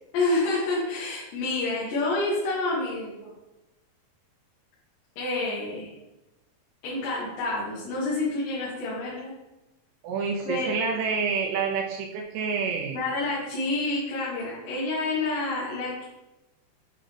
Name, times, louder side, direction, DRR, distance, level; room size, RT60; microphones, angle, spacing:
voice 1, 0.1-3.3 5.2-5.9 6.8-9.3 10.5-10.7 12.9-16.1, left 2 dB, 90° left, -9 dB, 3.8 m, -28 dB
voice 2, 10.0-13.0, right 5 dB, 80° right, 1 dB, 2.6 m, -28 dB
8.8 x 3.8 x 3.3 m, 1.0 s
omnidirectional pair, 4.9 m